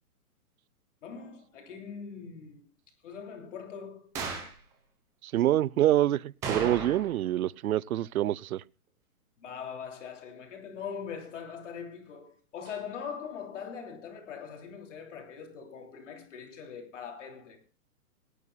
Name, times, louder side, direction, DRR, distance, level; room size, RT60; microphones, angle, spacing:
voice 1, 1.0-2.7 3.0-4.1 9.4-17.6, left 7 dB, 50° left, 3.1 m, -42 dB
sound 1, 4.2-4.6 6.4-7.3 7.5-7.6 12.7-12.8, right 4 dB, 5° right, 0.9 m, -35 dB
voice 2, 5.2-8.6, right 13 dB, 70° right, 0.5 m, -26 dB
22.0 x 11.0 x 2.2 m
hypercardioid pair, 170°, 46 cm